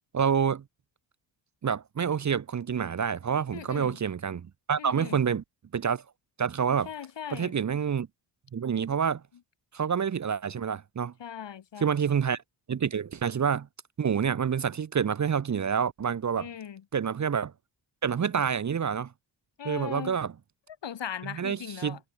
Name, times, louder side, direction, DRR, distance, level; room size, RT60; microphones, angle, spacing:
voice 1, 0.1-0.6 1.6-5.4 5.7-6.0 6.4-6.9 7.3-8.1 8.5-9.2 9.7-11.1 11.8-12.4 12.7-13.7 14.0-16.5 16.9-17.5 18.0-19.1 19.6-20.3 21.2-22.0, right 7 dB, 35° right, 0.9 m, -28 dB
voice 2, 3.5-4.0 4.8-5.2 6.8-7.6 11.2-11.9 16.4-16.8 19.6-20.2 20.8-22.0, left 8 dB, 60° left, 4.6 m, -39 dB
cardioid pair, 80°, 48 cm